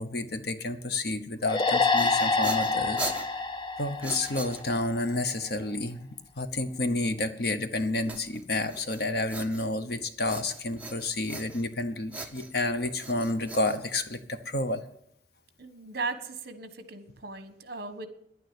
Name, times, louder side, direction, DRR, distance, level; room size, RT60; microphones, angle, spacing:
voice 1, 0.0-3.4 3.8-6.1 6.4-14.8, left 2 dB, 55° left, 9 dB, 1.0 m, -30 dB
sound 1, 1.4-4.9, left 4 dB, 25° left, 0.6 m, -27 dB
sound 2, 1.7-5.0 8.1-9.9 10.3-11.8 12.1-14.4, right 3 dB, 10° right, 0.8 m, -41 dB
voice 2, 15.6-18.1, right 3 dB, 55° right, 10 dB, 1.3 m, -37 dB
10.5 x 9.4 x 8.9 m, 0.72 s
head